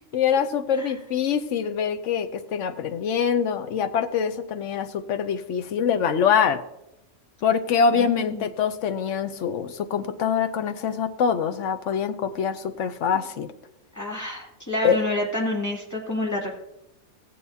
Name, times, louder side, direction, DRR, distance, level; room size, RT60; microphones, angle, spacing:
voice 1, 0.1-6.6 7.4-13.5 14.8-15.0, left 7 dB, 65° left, 8 dB, 1.0 m, -24 dB
voice 2, 7.9-8.5 14.0-16.5, left 1 dB, 10° left, -3 dB, 2.1 m, -28 dB
16.0 x 8.5 x 2.8 m, 0.89 s
omnidirectional pair, 1.5 m